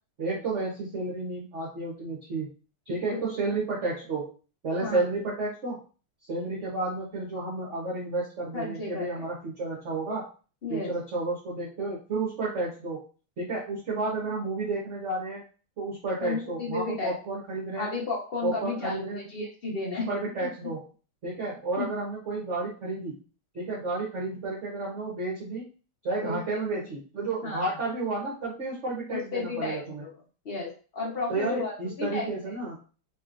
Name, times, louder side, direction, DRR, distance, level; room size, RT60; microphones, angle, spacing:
voice 1, 0.2-2.5 2.9-4.3 4.6-5.8 6.3-10.3 10.7-13.0 13.4-15.4 15.8-17.9 18.4-19.2 19.9-20.8 21.2-23.2 23.5-25.7 26.0-30.0 31.3-32.8, right 3 dB, 50° right, -5 dB, 0.9 m, -31 dB
voice 2, 8.5-9.2 10.6-11.0 16.2-17.1 17.8-20.1 20.4-20.5 21.8-21.9 26.2-26.8 27.4-27.8 29.1-30.1 30.4-32.3, left 3 dB, 45° left, -3 dB, 0.7 m, -33 dB
3.2 x 3.0 x 2.5 m, 0.36 s
omnidirectional pair, 2.3 m